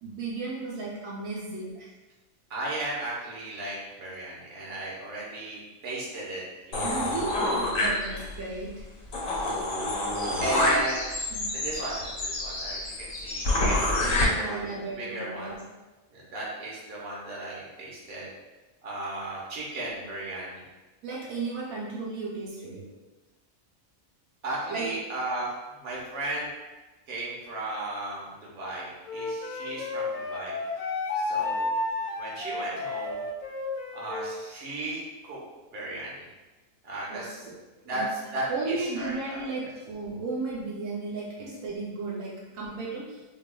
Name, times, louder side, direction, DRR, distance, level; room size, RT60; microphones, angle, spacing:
voice 1, 0.0-1.9 6.8-8.8 10.5-10.8 11.3-11.5 14.0-15.6 21.0-22.8 24.7-24.9 37.1-37.6 37.9-38.1 38.5-43.2, right 3 dB, 80° right, -4 dB, 1.1 m, -34 dB
voice 2, 2.5-6.4 6.7-7.1 9.3-9.4 10.4-11.0 11.5-13.9 14.3-15.6 16.1-18.3 18.8-20.6 24.4-26.5 27.1-30.6 30.8-31.7 32.1-33.2 33.9-35.4 35.7-36.1 36.8-37.5 37.8-39.4, right 2 dB, 50° right, -5 dB, 1.1 m, -35 dB
sound 1, 6.7-8.4 8.8-8.9 9.1-14.2, left 1 dB, 75° left, 1.2 m, -28 dB
Wind instrument woodwind instrument, 29.1-34.4, left 3 dB, 90° left, 0.4 m, -32 dB
5.0 x 2.3 x 2.2 m, 1.2 s
omnidirectional pair, 1.4 m